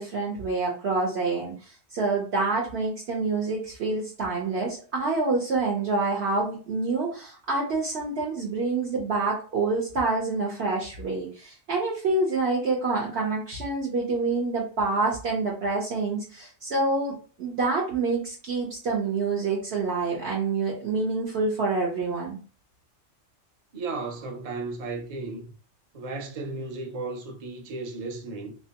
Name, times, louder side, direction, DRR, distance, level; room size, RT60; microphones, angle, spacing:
voice 1, 0.0-22.4, right 3 dB, 60° right, 1.0 m, -27 dB
voice 2, 23.7-25.5 25.9-28.6, right 3 dB, 40° right, 0.6 m, -34 dB
3.3 x 2.9 x 2.8 m
omnidirectional pair, 1.3 m